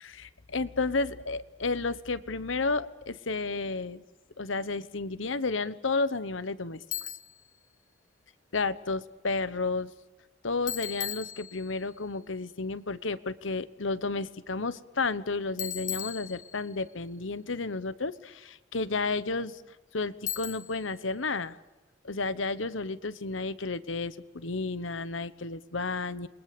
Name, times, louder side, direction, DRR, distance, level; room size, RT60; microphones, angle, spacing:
voice 1, 0.0-4.0 4.4-7.1 8.5-9.9 10.4-19.6 19.9-21.6 22.0-26.3, left 3 dB, 75° left, 14 dB, 1.1 m, -32 dB
Bicycle, 6.9-7.4 10.7-11.9 15.6-16.8 20.3-20.9, left 9 dB, 40° left, 1.6 m, -37 dB
29.0 x 23.0 x 6.9 m, 1.1 s
head